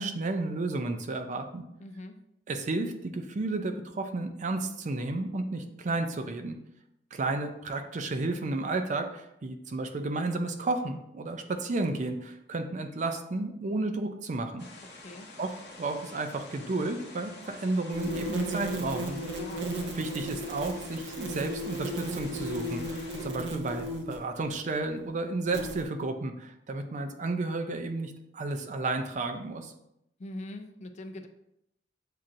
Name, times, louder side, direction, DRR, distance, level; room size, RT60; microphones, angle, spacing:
voice 1, 0.0-1.6 2.5-6.6 7.1-14.6 15.4-15.5 15.8-19.2 19.9-29.7, right 2 dB, 45° right, 6 dB, 0.4 m, -32 dB
voice 2, 1.8-2.2 14.9-15.3 19.4-19.7 30.2-31.3, left 1 dB, 40° left, 6 dB, 0.4 m, -42 dB
sound 1, 14.6-23.3, left 2 dB, 70° left, 0.7 m, -48 dB
sound 2, 17.9-24.3 25.5-25.8, right 1 dB, 90° right, 0.6 m, -35 dB
7.4 x 2.8 x 2.5 m, 0.81 s
head